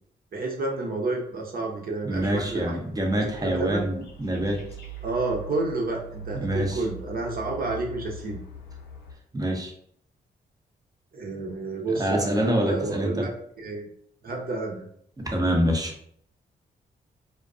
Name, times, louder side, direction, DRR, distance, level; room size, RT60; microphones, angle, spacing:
voice 1, 0.3-2.8 3.4-3.8 5.0-8.4 11.1-13.3 13.6-13.9 14.2-14.8, right 3 dB, 55° right, 0 dB, 0.7 m, -30 dB
voice 2, 2.0-4.6 6.4-6.8 9.3-9.7 11.9-13.3 15.2-15.9, equal, 20° right, 1 dB, 0.6 m, -26 dB
sound 1, 2.1-9.1, right 2 dB, 75° left, 0.6 m, -41 dB
2.3 x 2.2 x 2.4 m, 0.66 s
supercardioid pair, 55°, 18 cm